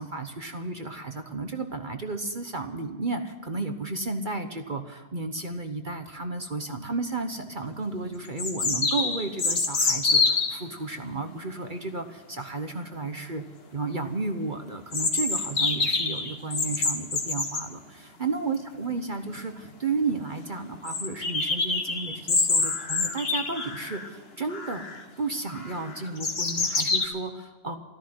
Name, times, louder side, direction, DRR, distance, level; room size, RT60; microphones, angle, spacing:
voice 1, 0.0-13.4 13.7-24.8 25.2-27.8, right 3 dB, 35° right, 7 dB, 0.9 m, -33 dB
sound 1, 7.4-7.5 8.4-10.6 14.9-17.7 19.3-19.4 19.6-19.7 20.1-20.2 20.9-24.1 24.5-25.0 25.5-27.0, left 4 dB, 35° left, 1.6 m, -26 dB
13.5 x 13.5 x 7.8 m, 1.3 s
omnidirectional pair, 2.0 m